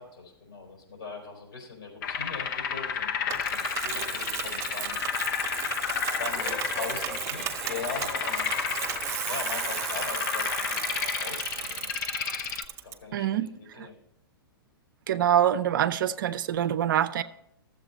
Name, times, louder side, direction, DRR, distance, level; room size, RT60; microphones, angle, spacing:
voice 1, 0.0-5.0 6.1-8.9 9.3-11.9 12.8-14.0, left 4 dB, 75° left, 4.3 m, -40 dB
sound 1, 2.0-12.7, left 7 dB, 55° left, 0.7 m, -32 dB
Bicycle, 3.3-12.9, right 9 dB, 25° right, 0.8 m, -35 dB
Laughter, 6.1-11.6, left 1 dB, 5° left, 0.5 m, -43 dB
voice 2, 13.1-13.9 15.1-17.2, right 10 dB, 60° right, 0.6 m, -25 dB
13.0 x 7.6 x 4.1 m
hypercardioid pair, 115°, 12 cm